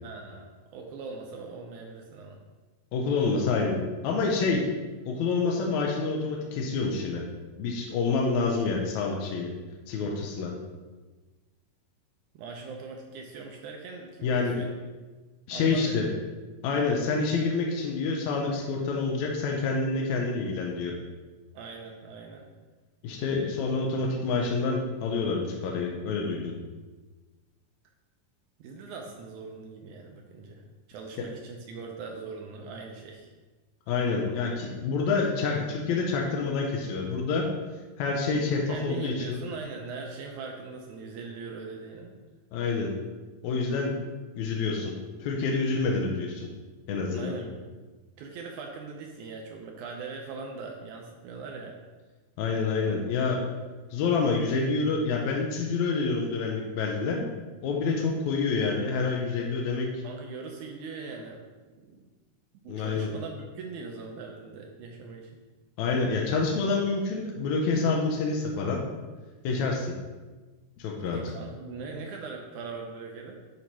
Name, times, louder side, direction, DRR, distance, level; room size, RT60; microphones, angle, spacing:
voice 1, 0.0-2.4 12.3-14.7 15.5-16.1 21.5-22.4 28.6-33.3 34.2-34.3 34.7-34.9 38.7-42.1 47.1-47.7 48.2-51.8 60.0-61.4 61.8-62.1 62.6-65.3 71.0-73.3, right 4 dB, 80° right, 1 dB, 1.8 m, -41 dB
voice 2, 2.9-4.6 5.1-7.2 7.6-9.5 9.9-10.5 14.2-14.6 15.5-16.1 16.6-20.9 23.0-26.5 33.9-37.5 38.0-39.4 42.5-42.9 43.4-44.0 44.3-44.9 45.2-46.5 46.9-47.3 52.4-53.4 53.9-57.2 57.6-59.9 62.7-63.1 65.8-68.8 69.4-69.9 70.8-71.2, left 4 dB, 75° left, 0 dB, 1.8 m, -27 dB
8.7 x 2.9 x 4.6 m, 1.3 s
omnidirectional pair, 3.9 m